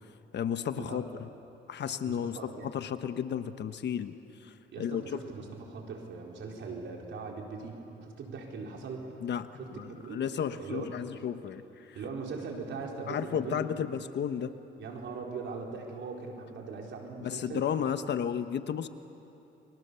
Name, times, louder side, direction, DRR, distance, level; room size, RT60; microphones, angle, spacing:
voice 1, 0.3-1.3 1.7-4.1 4.4-5.2 9.2-11.6 13.1-14.5 17.2-18.9, left 8 dB, 60° left, 10 dB, 1.2 m, -33 dB
voice 2, 2.0-2.7 4.7-9.1 9.5-10.2 10.6-10.9 11.4-11.5 11.9-13.8 14.8-17.6, right 4 dB, 70° right, 0 dB, 4.6 m, -40 dB
30.0 x 24.0 x 7.1 m, 2.9 s
cardioid pair, 90°, 20 cm